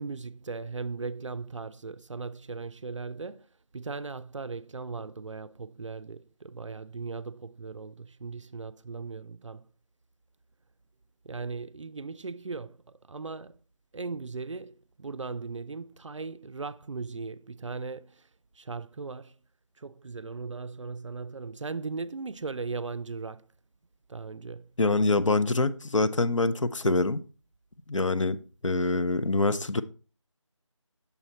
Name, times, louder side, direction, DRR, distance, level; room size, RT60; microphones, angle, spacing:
voice 1, 0.0-3.5 3.7-9.7 11.2-13.6 13.9-18.2 18.6-19.3 19.8-23.5 24.1-24.7, right 4 dB, 70° right, 0.4 m, -38 dB
voice 2, 24.8-27.2 27.9-28.4 28.6-29.8, left 2 dB, 70° left, 0.6 m, -25 dB
7.0 x 4.1 x 4.3 m
figure-of-eight pair, 170°, 17 cm